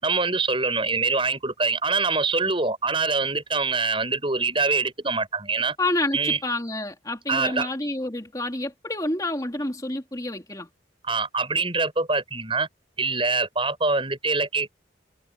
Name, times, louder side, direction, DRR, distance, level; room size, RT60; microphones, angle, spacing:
voice 1, 0.0-5.8 6.1-6.4 7.3-7.7 11.0-12.7 13.0-14.7, right 4 dB, 25° right, 6.2 m, -24 dB
voice 2, 5.8-10.7, left 2 dB, 20° left, 3.0 m, -28 dB
head